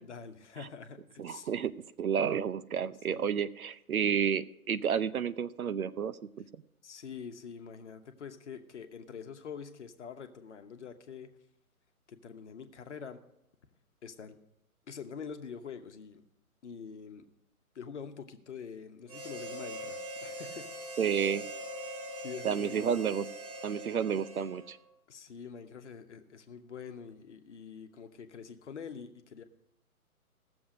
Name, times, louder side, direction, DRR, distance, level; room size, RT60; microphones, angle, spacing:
voice 1, 0.0-1.5 3.1-3.2 6.8-11.3 12.1-13.2 14.0-14.4 14.9-16.2 16.6-17.3 17.7-20.7 22.1-22.9 25.1-29.4, left 6 dB, 50° left, 8 dB, 1.1 m, -45 dB
voice 2, 1.2-1.7 2.0-6.4 21.0-21.5 22.4-23.2 23.6-24.8, right 7 dB, 70° right, 15 dB, 0.7 m, -31 dB
Harmonica, 19.1-24.9, equal, 25° right, 1.3 m, -42 dB
16.5 x 7.1 x 5.0 m, 0.79 s
figure-of-eight pair, 140°, 44 cm